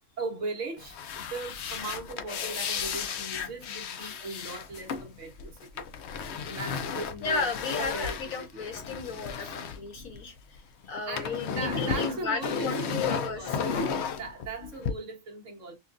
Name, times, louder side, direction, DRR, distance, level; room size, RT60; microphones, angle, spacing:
voice 1, 0.2-5.6 6.4-7.4 7.7-8.6 9.4-9.5 11.1-15.8, right 3 dB, 60° right, 1.6 m, -38 dB
sound 1, 0.8-10.6 10.8-14.9, left 6 dB, 60° left, 0.8 m, -34 dB
voice 2, 7.2-13.6, left 5 dB, 80° left, 1.6 m, -34 dB
5.6 x 2.4 x 2.6 m
omnidirectional pair, 1.4 m